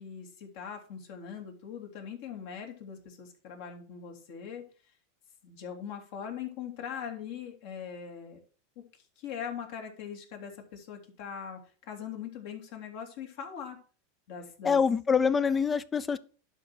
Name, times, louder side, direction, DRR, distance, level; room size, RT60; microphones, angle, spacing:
voice 1, 0.0-4.6 5.4-8.4 9.2-11.6 11.9-13.8 14.3-14.8, left 7 dB, 60° left, 2.9 m, -41 dB
voice 2, 14.6-16.2, left 6 dB, 20° left, 0.7 m, -25 dB
11.5 x 4.6 x 6.3 m
hypercardioid pair, 100°, 0 cm